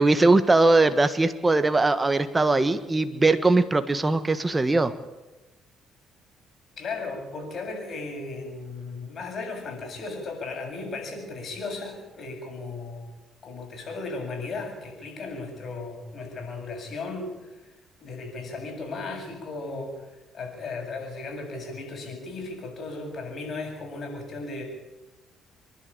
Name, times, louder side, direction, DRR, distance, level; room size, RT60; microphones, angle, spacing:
voice 1, 0.0-4.9, right 2 dB, 20° right, 10 dB, 1.4 m, -20 dB
voice 2, 6.8-13.1 13.4-17.7 18.0-24.6, left 3 dB, 50° left, 2 dB, 7.7 m, -36 dB
27.0 x 11.0 x 8.7 m, 1.1 s
supercardioid pair, 80°, 0 cm